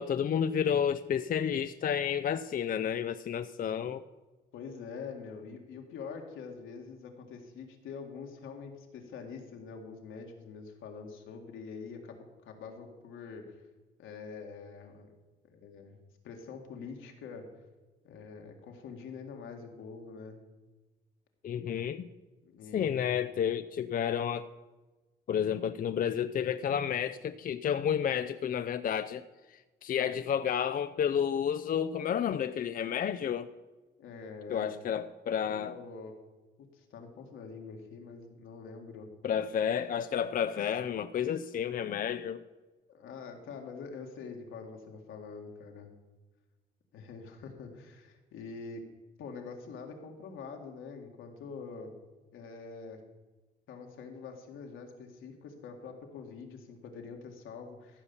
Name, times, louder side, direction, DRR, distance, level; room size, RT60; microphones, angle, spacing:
voice 1, 0.0-4.0 21.4-22.1 22.7-24.5 25.3-29.2 29.5-33.5 34.5-35.8 39.2-42.4, left 8 dB, 45° left, 11 dB, 0.5 m, -31 dB
voice 2, 4.5-13.6 14.0-15.1 15.5-16.0 16.2-17.5 18.0-20.4 22.5-23.1 34.0-34.7 35.4-36.1 36.7-39.1 42.9-45.9 46.9-48.8 49.2-52.0 52.3-53.0 53.7-58.0, left 5 dB, 80° left, 3 dB, 1.9 m, -45 dB
14.5 x 5.5 x 7.0 m, 1.2 s
cardioid pair, 90°, 20 cm